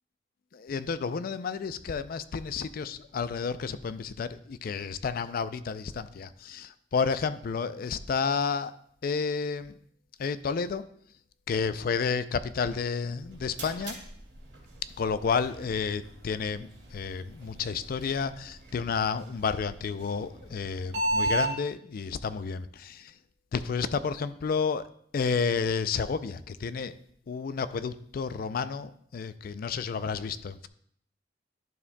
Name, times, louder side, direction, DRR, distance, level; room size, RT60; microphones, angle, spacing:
voice 1, 0.5-8.7 9.0-9.7 10.2-10.8 11.5-14.0 15.0-23.1 23.5-24.8 25.1-27.0 27.3-30.7, left 5 dB, 50° left, 14 dB, 0.4 m, -31 dB
sound 1, 13.0-21.5, right 1 dB, 70° right, 2.4 m, -36 dB
11.0 x 7.1 x 2.2 m, 0.66 s
head